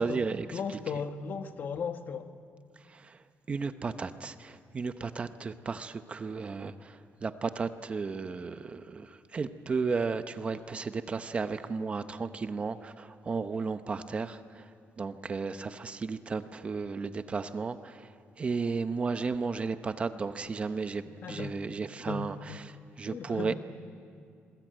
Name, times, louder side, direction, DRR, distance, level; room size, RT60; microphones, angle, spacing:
voice 1, 0.0-0.6 2.8-3.2 3.5-14.7 15.0-22.7 23.0-23.5, right 4 dB, 25° right, 10 dB, 0.8 m, -34 dB
voice 2, 0.5-2.4 21.2-21.6 22.1-22.6 23.0-23.5, left 6 dB, 50° left, 8 dB, 1.3 m, -36 dB
27.5 x 22.0 x 9.1 m, 2.3 s
cardioid pair, 165°, 4 cm